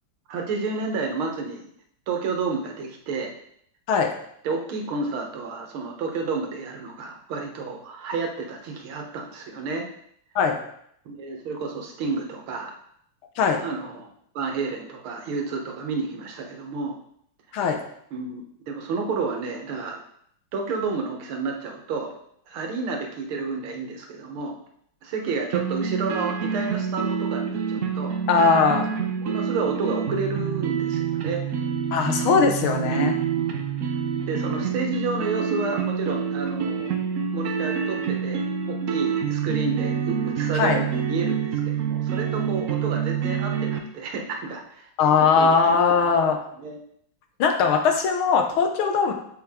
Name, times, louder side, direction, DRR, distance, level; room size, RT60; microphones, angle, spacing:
voice 1, 0.3-1.7 2.1-3.3 4.4-9.9 11.1-12.8 13.6-17.0 17.5-17.6 18.1-20.0 20.5-22.1 22.5-24.6 25.0-28.2 29.2-31.4 32.8-33.6 34.3-37.0 37.3-44.9 45.2-45.8 46.6-46.8, right 4 dB, 90° right, 2 dB, 2.0 m, -30 dB
sound 1, 25.5-43.8, right 7 dB, 60° right, 0.9 m, -27 dB
voice 2, 28.3-29.0 31.9-33.1 40.5-40.8 45.0-46.4 47.4-49.1, left 5 dB, 85° left, 5 dB, 1.8 m, -20 dB
6.9 x 6.5 x 3.6 m, 0.69 s
omnidirectional pair, 2.2 m